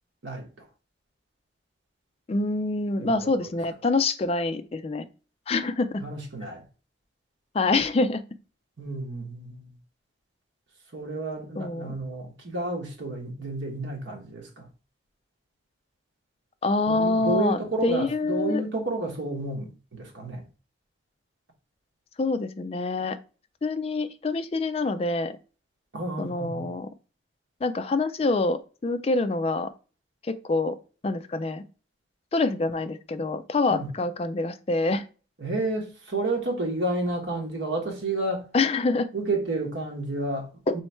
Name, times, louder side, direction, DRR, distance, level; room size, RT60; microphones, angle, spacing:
voice 1, 2.3-5.1 5.5-6.0 7.5-8.2 11.6-11.9 16.6-18.6 22.2-23.2 23.6-25.4 26.2-26.9 27.6-29.7 30.3-30.8 31.0-31.6 32.3-35.0 38.5-39.1 40.7-40.8, left 3 dB, 30° left, 0.3 m, -26 dB
voice 2, 3.0-3.5 6.0-6.6 8.8-9.7 10.9-14.7 16.8-20.5 25.9-26.7 33.7-33.9 35.4-38.5 39.1-40.8, right 2 dB, 80° right, 1.1 m, -31 dB
3.1 x 3.1 x 4.4 m
head